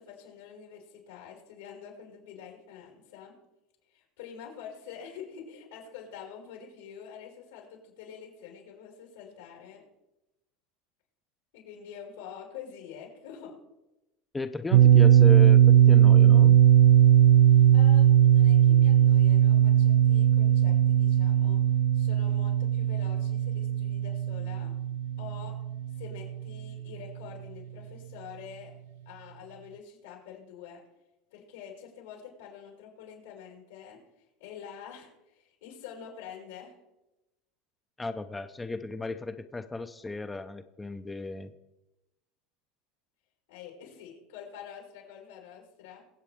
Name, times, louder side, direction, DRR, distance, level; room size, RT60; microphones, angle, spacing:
voice 1, 0.0-3.4 3.9-9.8 11.5-13.6 17.5-21.6 21.9-24.7 25.2-25.6 25.9-28.7 29.1-30.8 31.3-34.0 34.4-36.7 43.5-46.0, left 8 dB, 90° left, -1 dB, 5.4 m, -46 dB
voice 2, 14.3-16.6 38.0-41.5, left 3 dB, 10° left, 9 dB, 0.5 m, -35 dB
sound 1, 14.7-26.5, right 10 dB, 70° right, 0.4 m, -19 dB
24.0 x 8.0 x 3.5 m, 0.97 s
supercardioid pair, 140°, 0 cm